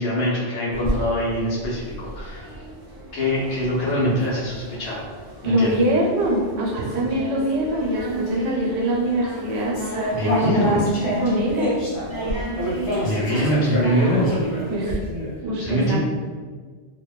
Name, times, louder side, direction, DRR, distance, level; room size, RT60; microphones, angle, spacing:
voice 1, 0.0-2.5 3.1-5.0 5.4-5.8 10.1-10.8 13.0-14.4 15.6-16.0, equal, 70° left, -7 dB, 1.1 m, -23 dB
sound 1, 0.7-15.0, right 2 dB, 35° right, 0.3 m, -34 dB
voice 2, 5.4-10.9 11.2-11.8 14.7-15.0 15.4-16.0, right 1 dB, 90° right, -1 dB, 0.9 m, -23 dB
sound 2, 9.7-15.3, left 1 dB, 45° left, 0.4 m, -27 dB
2.6 x 2.1 x 2.2 m, 1.5 s
omnidirectional pair, 1.2 m